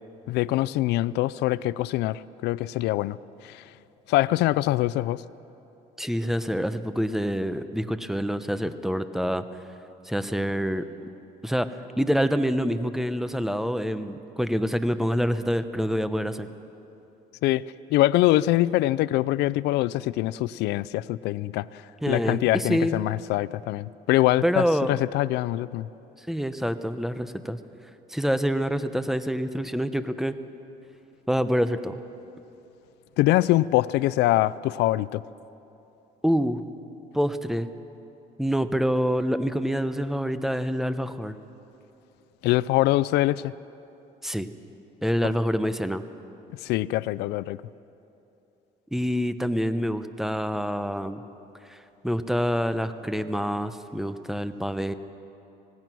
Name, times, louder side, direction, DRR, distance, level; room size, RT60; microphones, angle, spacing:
voice 1, 0.3-3.2 3.4-3.6 4.1-5.2 17.4-17.6 17.9-21.7 22.1-25.9 33.2-35.2 42.4-43.5 46.6-47.6, left 16 dB, 85° left, 18 dB, 0.4 m, -24 dB
voice 2, 6.0-9.4 10.1-10.9 11.4-11.7 12.0-16.5 22.0-23.0 24.4-25.0 26.3-27.6 28.1-30.3 31.3-32.0 36.2-36.6 37.1-37.7 38.4-41.4 44.2-44.5 45.0-46.0 48.9-51.2 51.7-51.8 52.0-54.9, equal, ahead, 11 dB, 0.8 m, -26 dB
25.5 x 18.5 x 6.1 m, 3.0 s
cardioid pair, 110°, 17 cm